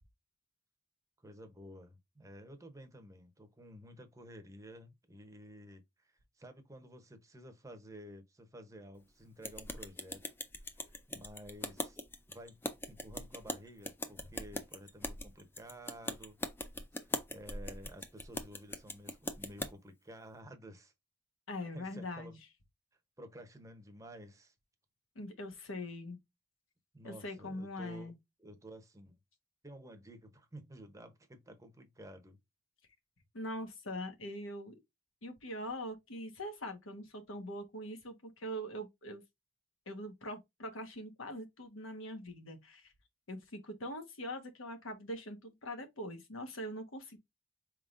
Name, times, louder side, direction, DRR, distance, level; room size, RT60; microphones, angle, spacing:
voice 1, 1.2-10.2 10.6-12.0 12.3-16.4 17.0-20.9 21.7-22.4 23.2-24.5 26.9-28.1 28.4-29.2 29.6-32.4, right 1 dB, 15° right, 0.8 m, -52 dB
sound 1, 9.4-19.7, left 1 dB, 10° left, 0.4 m, -41 dB
voice 2, 21.5-22.4 25.1-26.2 27.0-28.1 33.3-34.7 35.2-39.2 39.9-42.9 43.3-47.2, equal, 85° left, 1.2 m, -42 dB
4.6 x 3.6 x 2.5 m
head